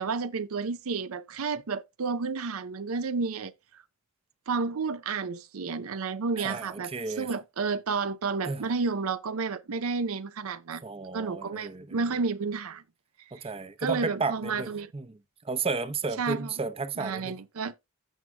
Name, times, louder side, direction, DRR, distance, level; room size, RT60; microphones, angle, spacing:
voice 1, 0.0-3.5 4.5-10.8 11.1-12.8 13.4-13.5 13.8-14.9 16.2-16.5 17.0-17.7, right 4 dB, 90° right, 0.6 m, -31 dB
voice 2, 6.4-7.3 8.4-8.6 10.8-12.0 13.3-15.1 15.4-17.4, right 4 dB, 25° right, 0.6 m, -33 dB
15.5 x 6.1 x 2.2 m
head